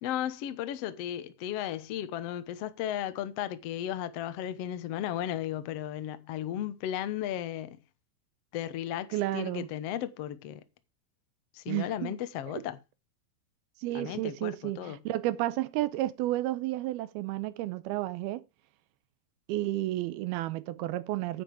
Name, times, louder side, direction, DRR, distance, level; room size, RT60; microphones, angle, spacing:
voice 1, 0.0-7.8 8.5-10.6 11.5-12.8 13.9-15.0, left 11 dB, 85° left, 1.4 m, -35 dB
voice 2, 9.1-9.7 11.7-12.2 12.5-12.6 13.8-18.4 19.5-21.4, right 16 dB, 80° right, 2.6 m, -32 dB
9.9 x 8.8 x 4.7 m
omnidirectional pair, 4.5 m